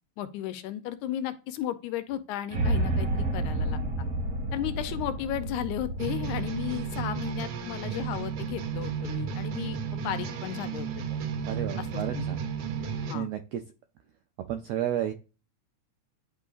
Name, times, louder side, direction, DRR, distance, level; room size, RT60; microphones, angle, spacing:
voice 1, 0.2-4.1 4.5-11.3 11.8-11.9 12.1-12.2 13.1-13.3, left 12 dB, 80° left, 12 dB, 2.0 m, -34 dB
sound 1, 2.5-8.6, right 1 dB, 30° right, 1.0 m, -31 dB
sound 2, 6.0-13.2, right 7 dB, 70° right, 1.8 m, -33 dB
voice 2, 11.5-12.4 13.1-13.6 14.5-15.1, right 11 dB, 90° right, 8 dB, 1.4 m, -31 dB
10.5 x 3.8 x 2.4 m, 0.33 s
omnidirectional pair, 3.5 m